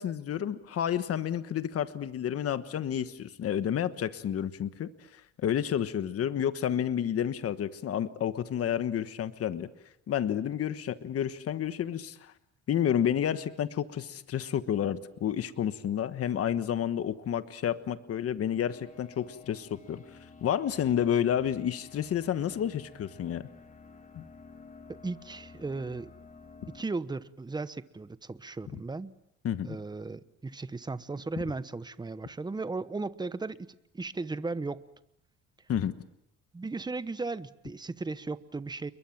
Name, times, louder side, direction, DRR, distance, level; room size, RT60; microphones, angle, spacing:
voice 1, 0.0-4.9 5.4-9.7 10.1-12.3 12.7-20.0 20.4-23.4 24.1-24.2 29.4-29.8 35.7-35.9, left 9 dB, 50° left, 11 dB, 1.3 m, -30 dB
sound 1, 18.4-26.8, left 4 dB, 25° left, 2.2 m, -52 dB
voice 2, 24.9-26.1 26.7-29.1 29.6-34.8 36.5-38.9, right 3 dB, 15° right, 14 dB, 1.0 m, -36 dB
29.5 x 22.5 x 7.4 m, 0.80 s
cardioid pair, 115°, 31 cm